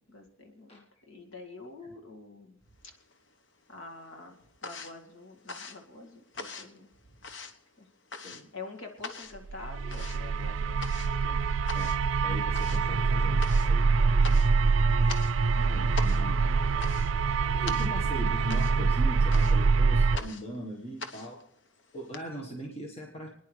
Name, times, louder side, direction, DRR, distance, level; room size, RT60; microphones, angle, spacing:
voice 1, 0.1-2.6 3.7-6.9 7.8-7.9 8.5-11.6, left 3 dB, 80° left, 2 dB, 2.2 m, -47 dB
sound 1, 2.8-3.6 3.9-22.2, left 4 dB, 60° left, 1.0 m, -43 dB
sound 2, 9.5-20.2, right 4 dB, 75° right, 0.4 m, -25 dB
voice 2, 11.7-13.9 14.1-14.6 14.9-15.1 15.5-16.8 17.4-21.4 21.9-23.3, equal, 30° left, -1 dB, 1.4 m, -41 dB
28.5 x 10.0 x 3.3 m, 0.81 s
head